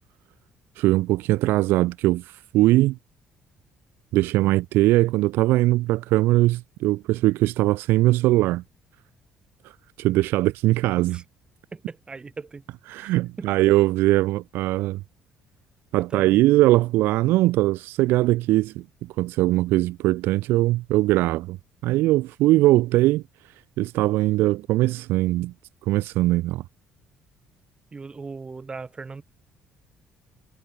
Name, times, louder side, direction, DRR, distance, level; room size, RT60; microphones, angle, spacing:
voice 1, 0.8-3.0 4.1-8.6 10.0-11.2 12.9-15.0 15.9-18.8 19.2-21.6 21.8-23.2 23.8-25.5 25.9-26.6, right 17 dB, 80° right, 0.6 m, -21 dB
voice 2, 11.7-12.6 13.0-13.5 16.0-16.4 27.9-29.2, right 4 dB, 25° right, 5.8 m, -38 dB
cardioid pair, 95°, 4 cm